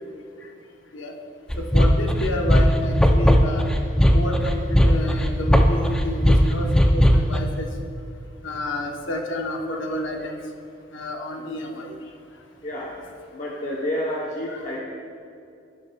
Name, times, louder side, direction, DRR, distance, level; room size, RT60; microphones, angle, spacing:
sound 1, 1.5-7.4, equal, 5° left, 0.3 m, -17 dB
voice 1, 1.7-3.6 4.1-7.6 8.4-10.4 10.9-12.0 14.5-14.6, left 1 dB, 70° left, 2 dB, 0.8 m, -30 dB
voice 2, 12.6-13.0 13.3-14.8, left 1 dB, 35° left, -4 dB, 0.8 m, -29 dB
10.5 x 10.5 x 2.2 m, 2.6 s
head